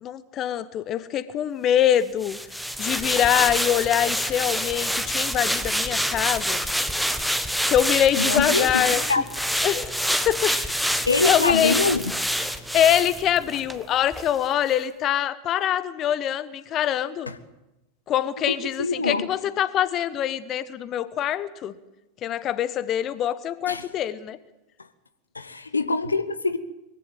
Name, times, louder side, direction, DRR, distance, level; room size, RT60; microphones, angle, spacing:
voice 1, 0.0-2.4 2.8-6.6 7.7-9.0 9.6-10.8 11.2-11.7 12.7-17.3 18.1-21.7 22.2-24.4, left 10 dB, 30° left, 1.0 m, -24 dB
sound 1, 2.2-13.8 14.1-14.3, equal, ahead, 1.4 m, -26 dB
voice 2, 8.2-9.2 10.5-10.6 11.1-12.1 17.3-17.4 18.4-19.3 23.7-23.9 25.3-26.6, left 3 dB, 80° left, 1.1 m, -24 dB
22.0 x 16.0 x 9.0 m
figure-of-eight pair, 90°, 0 cm